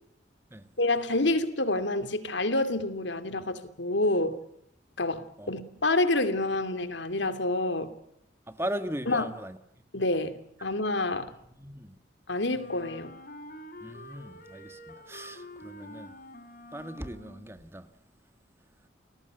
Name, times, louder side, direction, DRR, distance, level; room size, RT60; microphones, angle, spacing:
voice 1, 0.8-4.4 5.0-7.9 9.1-9.3 9.9-11.3 12.3-13.1, left 2 dB, 75° left, 2.6 m, -28 dB
voice 2, 8.5-9.6 11.6-12.0 13.8-16.1 16.7-17.9, right 1 dB, 15° right, 1.5 m, -38 dB
Wind instrument woodwind instrument, 12.5-17.6, left 1 dB, 50° left, 3.3 m, -47 dB
29.5 x 20.5 x 8.0 m
head